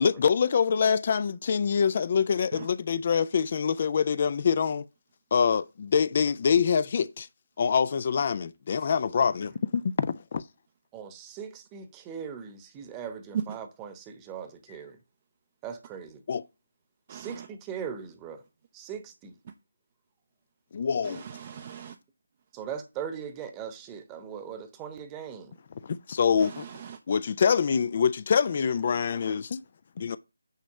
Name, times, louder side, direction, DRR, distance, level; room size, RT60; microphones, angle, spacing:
voice 1, 0.0-4.9 5.3-7.3 7.6-10.4 16.3-16.4 20.7-21.2 25.8-26.7 27.1-29.6 30.0-30.2, left 6 dB, 40° left, 0.4 m, -25 dB
voice 2, 10.9-15.0 15.6-16.1 17.1-18.4 18.7-19.3 22.5-25.5, right 7 dB, 15° right, 1.0 m, -39 dB
voice 3, 17.1-17.5 21.0-22.0 26.4-27.0, right 8 dB, 30° right, 0.6 m, -37 dB
9.1 x 3.1 x 6.6 m
figure-of-eight pair, 155°, 0 cm